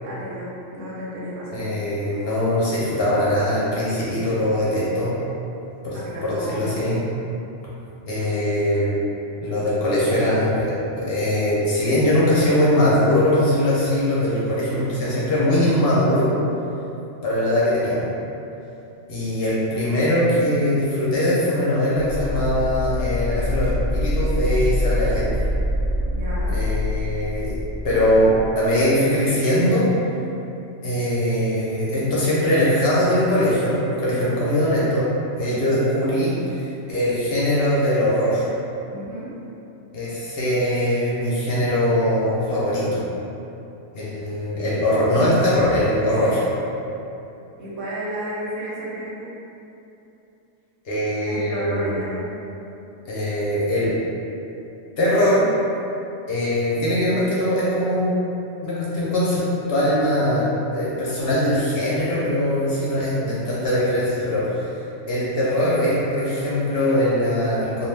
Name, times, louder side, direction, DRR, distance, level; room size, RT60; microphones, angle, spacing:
voice 1, 0.0-1.6 2.0-2.2 5.9-6.9 26.1-26.6 35.4-35.8 38.9-39.4 47.6-49.3 51.3-52.3, equal, 90° right, -7 dB, 1.0 m, -33 dB
voice 2, 1.5-5.1 5.8-7.0 8.1-9.0 9.4-16.3 17.2-18.1 19.1-25.4 26.5-27.5 27.8-28.3 28.6-29.9 30.8-35.1 35.3-36.3 36.6-38.4 39.9-43.0 43.9-46.4 50.8-52.0 53.0-53.9 55.0-55.5 56.3-58.2 58.6-59.4 59.7-60.4 60.7-64.6 65.1-67.9, left 1 dB, 60° left, -8 dB, 0.6 m, -21 dB
sound 1, 22.0-28.6, left 1 dB, 90° left, 1.0 m, -25 dB
2.3 x 2.2 x 3.2 m, 2.8 s
omnidirectional pair, 1.5 m